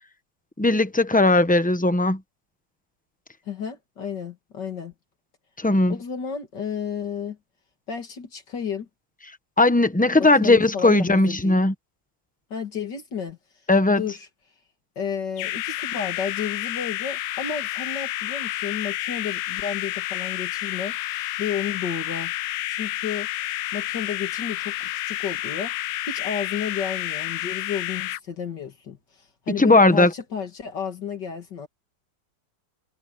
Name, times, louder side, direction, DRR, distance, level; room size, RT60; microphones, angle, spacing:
voice 1, 0.6-2.2 5.6-6.0 9.6-11.7 13.7-14.0 29.6-30.1, left 2 dB, 10° left, 0.6 m, -18 dB
voice 2, 3.5-4.9 5.9-7.4 7.9-8.9 10.2-11.6 12.5-13.4 14.0-14.3 15.0-22.3 22.7-25.8 26.1-31.7, left 7 dB, 70° left, 2.7 m, -32 dB
sound 1, 15.4-28.2, left 14 dB, 90° left, 1.3 m, -30 dB
omnidirectional pair, 1.9 m